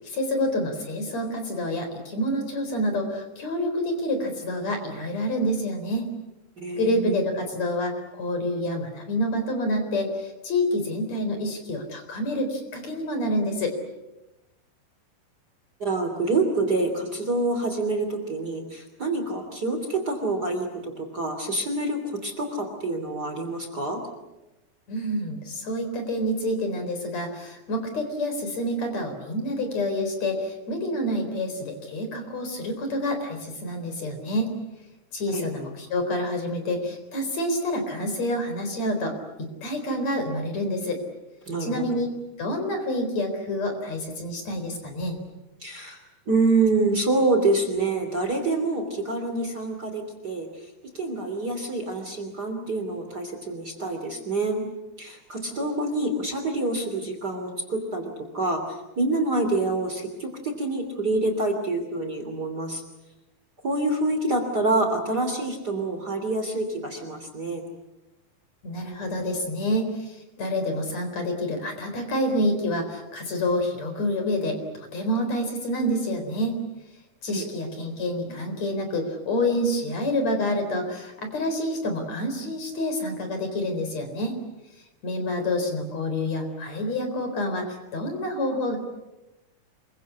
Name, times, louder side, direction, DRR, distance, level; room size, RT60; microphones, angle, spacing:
voice 1, 0.0-6.1 6.7-13.7 24.9-34.5 35.1-41.0 41.6-45.2 68.6-74.6 74.9-76.6 77.2-84.4 85.0-88.8, left 1 dB, 50° left, 6 dB, 5.2 m, -28 dB
voice 2, 6.6-7.2 15.8-24.0 35.3-35.5 41.5-41.8 45.6-46.0 46.3-50.5 50.9-54.6 55.0-58.6 59.0-62.8 63.6-67.6 77.3-77.4, right 2 dB, 30° right, 5 dB, 3.2 m, -26 dB
27.0 x 23.5 x 8.5 m, 1.0 s
omnidirectional pair, 4.1 m